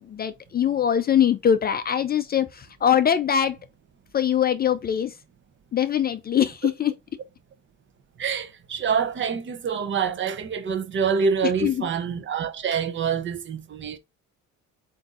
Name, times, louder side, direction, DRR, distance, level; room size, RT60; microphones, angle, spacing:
voice 1, 0.0-3.6 4.1-5.2 5.7-6.9 11.6-11.9, left 9 dB, 30° left, 0.4 m, -22 dB
voice 2, 8.2-14.0, right 6 dB, 40° right, 0.7 m, -26 dB
7.8 x 2.7 x 2.4 m
cardioid pair, 120°, 31 cm